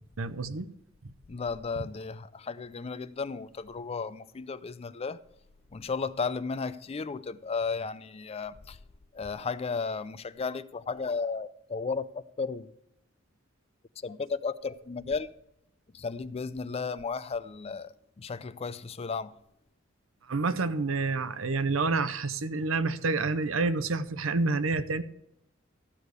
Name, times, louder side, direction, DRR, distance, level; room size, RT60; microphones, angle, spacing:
voice 1, 0.2-0.7 1.0-1.1 20.3-25.0, right 3 dB, 85° right, 0.7 m, -28 dB
voice 2, 1.3-5.2 5.7-8.8 9.1-12.7 14.0-15.3 15.9-19.3, left 4 dB, 30° left, 0.4 m, -34 dB
14.0 x 4.9 x 8.1 m
head